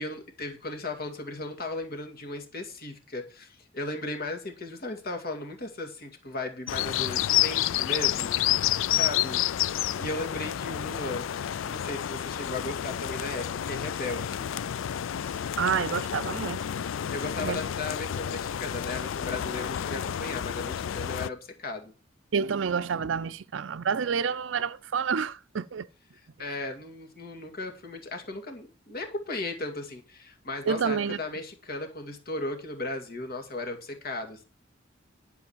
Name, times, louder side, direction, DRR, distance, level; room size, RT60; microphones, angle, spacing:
voice 1, 0.0-8.4 8.9-14.5 17.1-21.9 26.4-34.4, left 2 dB, 50° left, 2.2 m, -36 dB
sound 1, 6.7-21.3, left 11 dB, 90° left, 0.4 m, -30 dB
voice 2, 15.6-16.6 17.4-17.6 22.3-25.9 30.7-31.2, right 6 dB, 70° right, 0.5 m, -28 dB
10.5 x 4.8 x 7.3 m
head